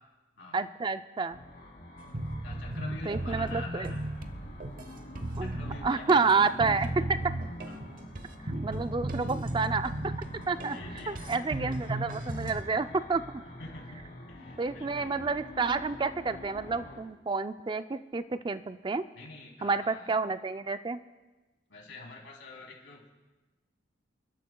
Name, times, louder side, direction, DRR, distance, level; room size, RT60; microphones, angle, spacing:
voice 1, 0.5-1.4 3.1-3.9 5.4-7.3 8.4-10.1 10.5-10.8 11.1-13.4 14.6-19.0 19.6-21.0, right 4 dB, 25° right, 11 dB, 0.4 m, -29 dB
sound 1, 1.3-17.0, left 1 dB, 60° left, 3.4 m, -46 dB
sound 2, 2.1-12.6, right 1 dB, 50° right, 0.8 m, -36 dB
voice 2, 2.4-4.0 5.4-7.0 7.7-7.8 8.0-8.1 8.5-8.7 10.6-11.7 13.6-15.1 19.1-20.1 21.7-23.1, left 2 dB, 90° left, -1 dB, 3.2 m, -46 dB
29.0 x 12.5 x 2.3 m, 1.2 s
head